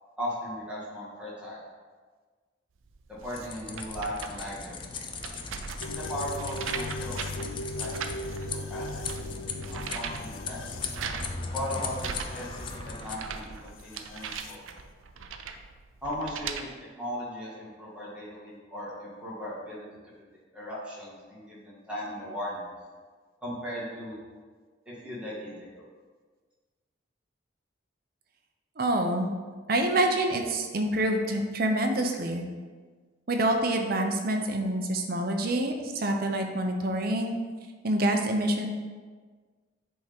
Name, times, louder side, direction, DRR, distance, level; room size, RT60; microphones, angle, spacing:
voice 1, 0.2-1.6 3.1-4.9 6.0-7.9 8.4-9.3 9.6-10.6 11.5-12.5 12.8-14.6 16.0-16.7 17.0-19.8 20.5-22.7 23.4-24.2 24.9-25.8, left 1 dB, 5° right, -8 dB, 2.0 m, -37 dB
sound 1, 2.9-16.6, right 6 dB, 90° right, 0.5 m, -40 dB
sound 2, 3.3-13.2, left 4 dB, 25° left, 0.4 m, -39 dB
sound 3, 5.8-14.6, left 2 dB, 90° left, 0.4 m, -40 dB
voice 2, 28.8-29.3 29.7-32.5 33.3-37.3 37.8-38.7, right 1 dB, 50° right, 3 dB, 0.7 m, -26 dB
7.6 x 3.7 x 4.4 m, 1.5 s
head